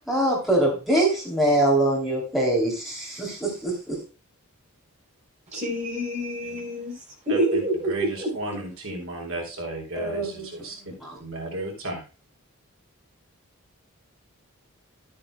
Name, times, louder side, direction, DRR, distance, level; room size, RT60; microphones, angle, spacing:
voice 1, 0.1-4.0 9.9-10.4 11.0-11.2, right 1 dB, ahead, -4 dB, 2.9 m, -23 dB
voice 2, 5.5-8.3, right 1 dB, 30° right, -1 dB, 4.7 m, -27 dB
voice 3, 7.3-10.8 11.2-12.0, right 2 dB, 65° right, 0 dB, 3.2 m, -34 dB
13.0 x 8.7 x 2.2 m, 0.31 s
head